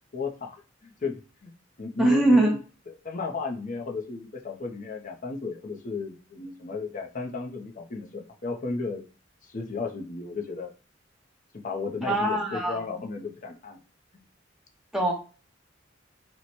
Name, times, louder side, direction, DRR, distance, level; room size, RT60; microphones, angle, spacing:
voice 1, 0.1-1.5 1.8-2.6 2.9-9.0 9.4-10.7 11.6-13.8, left 3 dB, 40° left, 2 dB, 0.6 m, -34 dB
voice 2, 2.0-2.5 12.0-12.8 14.9-15.1, right 1 dB, ahead, -1 dB, 0.8 m, -22 dB
3.0 x 2.1 x 4.1 m, 0.35 s
head